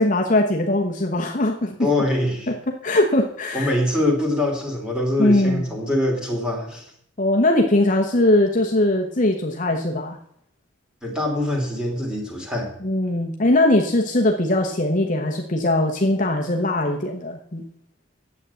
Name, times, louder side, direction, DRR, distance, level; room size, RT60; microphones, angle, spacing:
voice 1, 0.0-1.8 2.7-3.7 5.2-5.7 7.2-10.2 12.8-17.7, left 1 dB, 40° left, 1 dB, 1.0 m, -20 dB
voice 2, 1.8-2.5 3.5-6.9 11.0-12.7, left 1 dB, 5° right, 0 dB, 2.7 m, -23 dB
9.5 x 7.7 x 8.1 m, 0.70 s
head